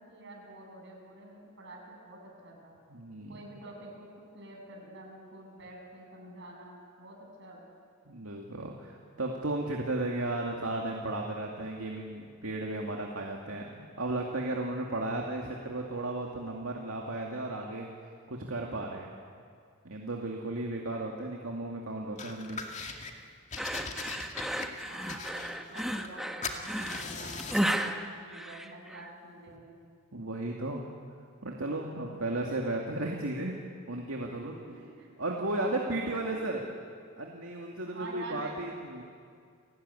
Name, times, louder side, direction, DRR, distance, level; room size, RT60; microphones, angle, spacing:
voice 1, 0.0-2.8 3.3-4.1 4.3-7.6 24.8-29.8 31.9-32.6 34.4-36.4 37.9-38.6, right 1 dB, 55° right, -1 dB, 7.6 m, -48 dB
voice 2, 2.9-3.3 8.1-17.9 18.3-19.1 19.8-22.6 30.1-30.9 31.4-33.5 33.9-34.5 35.2-36.6 37.2-39.0, right 2 dB, 70° right, 0 dB, 2.5 m, -34 dB
sound 1, 22.2-23.1 23.5-26.2 26.4-27.7, left 4 dB, 35° left, 2.2 m, -40 dB
sound 2, 23.6-29.1, equal, ahead, 1.2 m, -34 dB
30.0 x 18.5 x 9.9 m, 2.2 s
head